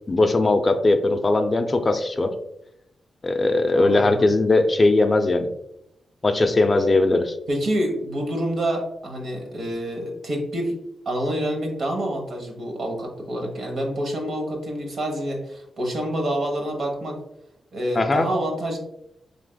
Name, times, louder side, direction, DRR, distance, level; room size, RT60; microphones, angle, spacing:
voice 1, 0.1-2.3 3.2-5.5 6.2-7.3 18.0-18.3, left 2 dB, 30° left, 7 dB, 0.3 m, -19 dB
voice 2, 3.7-4.3 7.5-10.8 11.0-17.2 17.7-18.8, right 1 dB, 60° right, 2 dB, 1.0 m, -27 dB
4.7 x 3.4 x 2.2 m, 0.79 s
wide cardioid pair, 125°, 0 cm